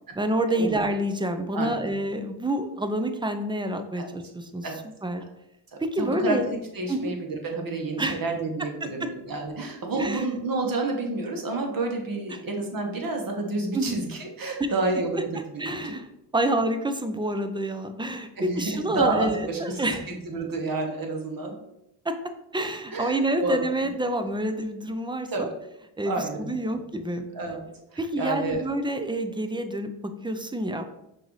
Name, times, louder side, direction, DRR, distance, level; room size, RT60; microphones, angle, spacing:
voice 1, 0.2-4.7 5.0-5.2 5.8-6.5 6.9-7.1 8.0-8.2 8.8-9.1 10.0-10.2 12.3-12.4 13.7-14.0 15.6-16.1 16.3-20.1 22.0-22.2 22.5-25.5 26.0-27.3 28.0-29.9 30.2-30.9, right 1 dB, 10° right, 8 dB, 0.5 m, -28 dB
voice 2, 1.5-1.9 4.0-4.1 4.6-4.8 6.0-6.4 6.7-16.0 18.4-19.9 20.2-21.6 22.9-23.6 25.3-25.6 26.0-26.8 27.3-28.6, right 3 dB, 45° right, 2 dB, 1.2 m, -30 dB
5.7 x 2.7 x 3.1 m, 0.86 s
cardioid pair, 55°, 48 cm